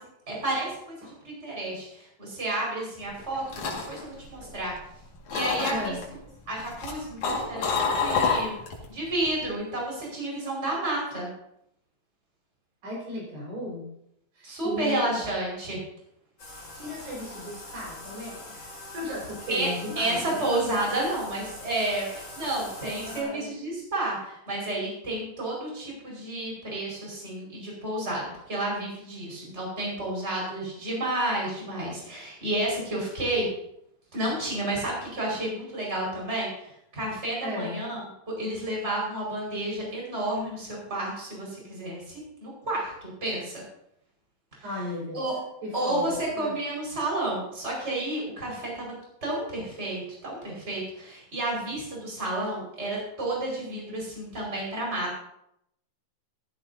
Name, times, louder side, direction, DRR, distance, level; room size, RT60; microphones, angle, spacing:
voice 1, 0.3-4.7 5.3-5.9 6.5-8.6 8.9-11.3 14.4-15.8 19.5-19.7 20.0-33.5 34.1-43.6 45.1-45.3 45.7-48.9 49.2-55.2, right 1 dB, 15° right, -3 dB, 5.1 m, -31 dB
sound 1, 3.1-4.9 5.3-6.0 6.6-8.8 9.2-9.5, left 5 dB, 60° left, 3.2 m, -28 dB
voice 2, 5.7-6.0 12.8-13.8 14.3-15.2 16.7-20.4 20.8-21.2 23.0-23.6 37.4-37.8 44.6-45.2 45.6-46.6, left 1 dB, 80° right, -3 dB, 6.5 m, -36 dB
Bathtub (filling or washing), 16.4-23.2, left 2 dB, 35° left, 5.2 m, -43 dB
15.5 x 14.5 x 2.7 m, 0.77 s
omnidirectional pair, 4.1 m